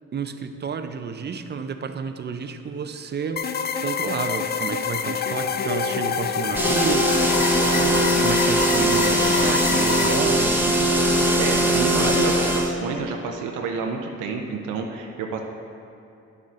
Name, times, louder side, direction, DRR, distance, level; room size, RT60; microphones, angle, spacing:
voice 1, 0.1-3.5 3.8-7.2 7.6-10.5 11.8-12.2, right 6 dB, 35° right, 8 dB, 0.6 m, -31 dB
Wind instrument woodwind instrument, 3.2-11.0, left 5 dB, 75° left, 1.3 m, -36 dB
sound 1, 3.4-10.2, left 7 dB, 35° left, 0.4 m, -27 dB
sound 2, 6.5-12.7, right 1 dB, 5° right, 1.0 m, -20 dB
voice 2, 11.4-15.4, right 5 dB, 85° right, 2 dB, 0.7 m, -29 dB
9.6 x 6.5 x 3.7 m, 2.8 s
cardioid pair, 90°, 30 cm